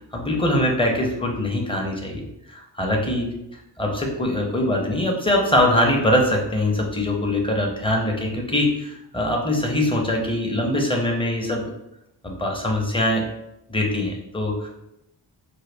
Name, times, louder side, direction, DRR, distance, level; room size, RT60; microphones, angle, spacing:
voice 1, 0.1-3.3 3.8-11.7 12.2-13.3 13.7-14.7, left 1 dB, 10° left, 0 dB, 0.8 m, -22 dB
4.7 x 2.2 x 3.3 m, 0.84 s
cardioid pair, 85°, 45 cm